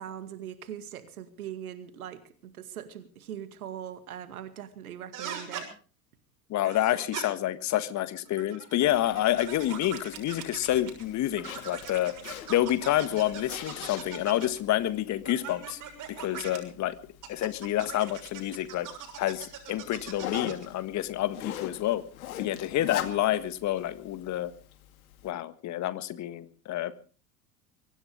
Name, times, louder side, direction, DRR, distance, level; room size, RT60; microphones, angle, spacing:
voice 1, 0.0-5.7, right 10 dB, 70° right, 11 dB, 2.2 m, -41 dB
sound 1, 5.1-5.7 6.6-7.2 8.3-11.0 11.4-14.6 15.3-16.6 17.2-20.7, right 8 dB, 40° right, 6.8 m, -41 dB
voice 2, 6.5-12.1 12.5-15.8 16.2-16.9 17.3-18.9 19.2-22.0 22.4-24.5 25.2-26.9, left 13 dB, 40° left, 13 dB, 1.6 m, -28 dB
Zipper (clothing), 8.8-25.3, left 10 dB, 65° left, 2.3 m, -43 dB
23.5 x 17.5 x 3.5 m, 0.39 s
figure-of-eight pair, 70°, 45 cm